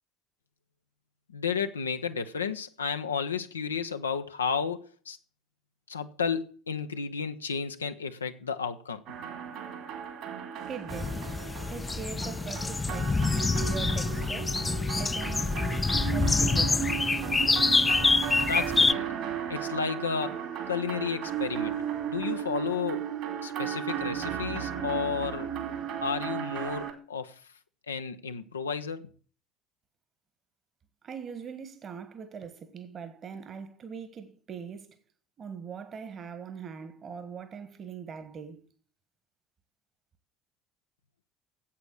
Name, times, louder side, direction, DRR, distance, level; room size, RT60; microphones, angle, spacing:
voice 1, 1.3-5.2 5.9-9.0 18.5-19.1 19.5-20.4 20.7-21.7 22.1-23.0 23.4-25.5 26.0-27.4 27.9-29.1, left 6 dB, 85° left, 0.6 m, -32 dB
sound 1, 9.1-26.9, right 9 dB, 60° right, 2.5 m, -35 dB
voice 2, 10.7-11.2 11.7-14.6 14.9-15.6 16.1-16.9 31.0-34.9 35.4-38.6, right 6 dB, 40° right, 1.5 m, -41 dB
sound 2, 10.9-18.9, left 4 dB, 20° left, 0.5 m, -26 dB
8.5 x 8.1 x 6.3 m
figure-of-eight pair, 65°, 0 cm